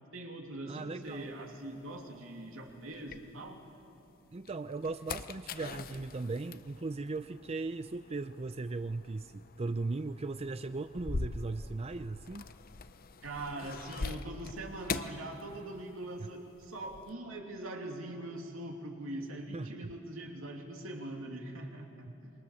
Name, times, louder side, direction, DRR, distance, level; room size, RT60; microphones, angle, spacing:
voice 1, 0.1-3.6 13.2-22.3, right 1 dB, 85° right, 2 dB, 2.7 m, -42 dB
voice 2, 0.7-1.3 4.3-12.4 19.5-19.9 22.1-22.2, right 3 dB, 30° right, 11 dB, 0.5 m, -38 dB
sound 1, 1.1-3.8 4.3-16.1 16.3-17.1, left 4 dB, 45° left, 0.7 m, -43 dB
25.0 x 22.5 x 7.2 m, 2.6 s
head